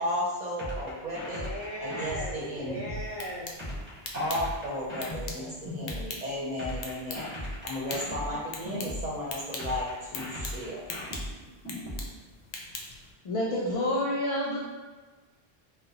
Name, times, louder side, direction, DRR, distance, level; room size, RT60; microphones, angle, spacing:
voice 1, 0.0-1.5 1.8-2.8 4.1-7.2 7.6-10.9, left 1 dB, 45° right, -6 dB, 0.7 m, -34 dB
sound 1, 0.6-3.1 3.6-6.1 6.6-9.1 9.6-12.1, left 1 dB, 10° right, 1.0 m, -37 dB
voice 2, 1.3-3.5, equal, 40° left, -7 dB, 0.8 m, -37 dB
sound 2, 2.9-13.1, left 3 dB, 75° left, 0.8 m, -43 dB
voice 3, 13.2-14.6, left 1 dB, 55° left, -5 dB, 0.3 m, -28 dB
3.9 x 2.1 x 2.8 m, 1.3 s
omnidirectional pair, 1.1 m